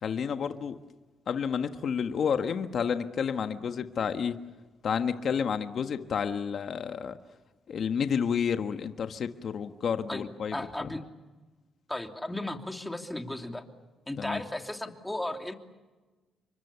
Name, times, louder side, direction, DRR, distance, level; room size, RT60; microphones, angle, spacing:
voice 1, 0.0-0.8 1.3-4.4 4.8-7.2 7.7-10.9 14.2-14.4, left 7 dB, 55° left, 7 dB, 1.5 m, -30 dB
voice 2, 10.5-11.0 11.9-13.6 14.1-15.5, left 1 dB, 10° left, 4 dB, 3.0 m, -35 dB
29.5 x 24.5 x 7.1 m, 1.2 s
cardioid pair, 90°, 0 cm